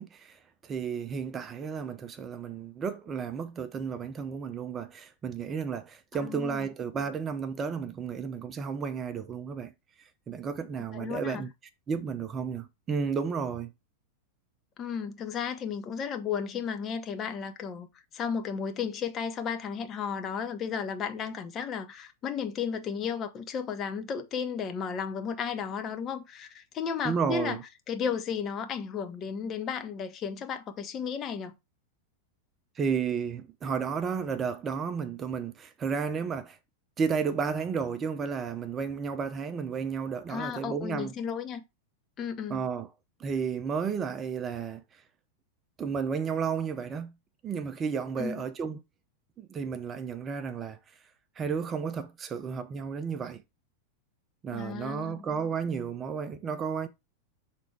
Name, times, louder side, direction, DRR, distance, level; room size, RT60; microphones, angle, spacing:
voice 1, 0.0-9.7 10.3-11.5 11.9-13.7 27.0-27.6 32.8-36.6 37.0-41.1 42.5-42.9 43.2-44.8 45.8-47.1 47.4-48.8 49.4-50.8 51.4-53.4 54.4-56.9, right 6 dB, 25° right, 0.6 m, -32 dB
voice 2, 6.2-6.7 10.9-11.4 14.8-17.9 18.1-27.6 27.9-31.5 40.3-41.6 42.2-42.6 48.2-48.4 54.5-55.2, left 7 dB, 30° left, 0.8 m, -34 dB
6.1 x 3.4 x 4.5 m
figure-of-eight pair, 90°, 0 cm